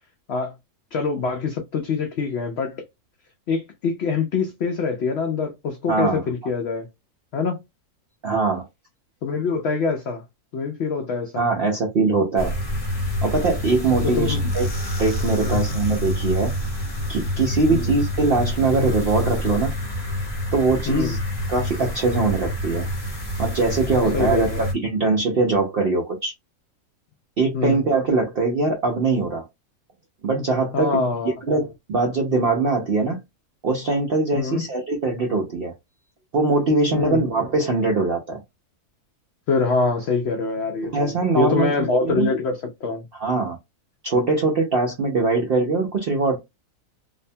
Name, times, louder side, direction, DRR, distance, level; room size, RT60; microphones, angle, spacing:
voice 1, 0.9-2.8 3.5-6.9 7.3-7.6 9.2-10.2 10.5-11.5 14.0-14.4 15.4-15.7 17.7-17.9 20.9-21.2 24.1-24.6 27.5-27.8 30.7-31.3 34.3-34.6 36.9-37.2 39.5-43.1, left 4 dB, 80° left, 0.5 m, -24 dB
voice 2, 5.9-6.2 8.2-8.7 11.4-12.6 13.2-14.7 15.0-16.5 17.1-19.7 20.5-21.2 21.5-22.9 23.4-26.3 27.4-29.5 30.2-33.2 33.6-35.7 36.3-38.4 40.8-42.3 43.2-43.6 44.0-46.4, right 3 dB, 70° right, 0.5 m, -22 dB
sound 1, 12.4-24.7, equal, 25° left, 0.6 m, -27 dB
2.6 x 2.1 x 2.6 m
omnidirectional pair, 1.6 m